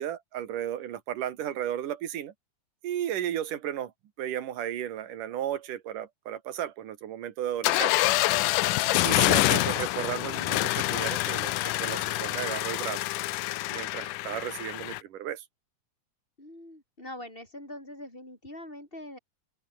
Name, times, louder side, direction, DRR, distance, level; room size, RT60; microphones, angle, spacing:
voice 1, 0.0-2.3 2.8-3.9 4.2-8.1 9.0-13.1 13.7-15.5, right 11 dB, 85° right, 3.3 m, -34 dB
sound 1, 7.6-15.0, left 18 dB, 85° left, 2.3 m, -26 dB
voice 2, 16.4-19.2, left 1 dB, 15° left, 8.2 m, -43 dB
open air
omnidirectional pair, 3.6 m